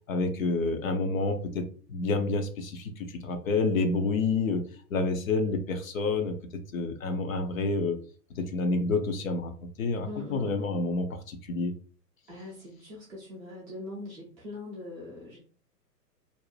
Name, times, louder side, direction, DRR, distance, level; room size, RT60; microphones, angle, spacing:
voice 1, 0.1-8.0 8.4-9.5 9.8-11.7, left 3 dB, 55° left, 7 dB, 0.6 m, -29 dB
voice 2, 10.0-10.7 12.3-15.4, left 2 dB, 10° right, -6 dB, 0.4 m, -41 dB
2.6 x 2.1 x 3.1 m, 0.42 s
figure-of-eight pair, 115°, 50 cm